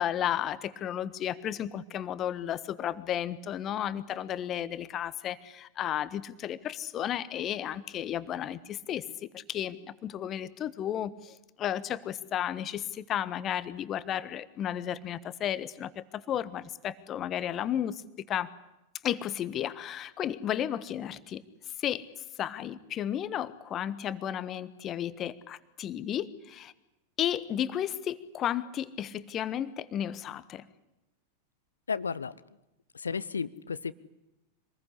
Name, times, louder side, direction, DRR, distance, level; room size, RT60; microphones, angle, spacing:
voice 1, 0.0-18.0 18.3-18.5 19.0-21.4 21.8-22.1 22.4-26.7 27.2-30.6, left 10 dB, 30° left, 15 dB, 1.4 m, -33 dB
voice 2, 31.9-32.3 32.9-33.9, left 5 dB, 75° left, 19 dB, 0.9 m, -33 dB
26.5 x 20.5 x 9.8 m, 0.92 s
figure-of-eight pair, 90°, 0 cm